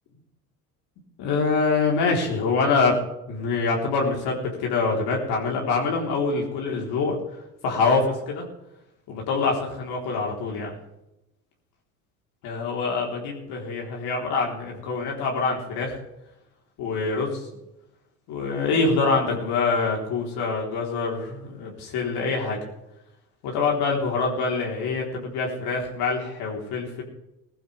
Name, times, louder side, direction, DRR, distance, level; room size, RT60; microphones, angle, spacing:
voice 1, 1.2-3.0 3.3-7.2 7.6-8.5 9.1-10.7 12.4-16.0 16.8-17.5 18.3-22.6 23.4-27.0, left 4 dB, 55° left, -1 dB, 3.9 m, -25 dB
18.0 x 15.0 x 3.4 m, 0.89 s
hypercardioid pair, 80°, 47 cm